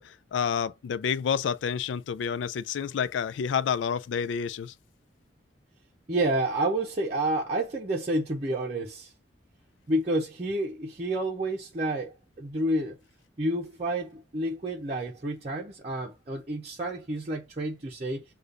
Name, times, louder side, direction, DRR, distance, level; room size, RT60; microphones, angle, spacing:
voice 1, 0.0-4.7, left 7 dB, 85° left, 0.3 m, -29 dB
voice 2, 6.1-9.1 9.9-13.0 13.4-18.2, right 1 dB, 35° right, 0.7 m, -29 dB
6.6 x 2.4 x 2.5 m
head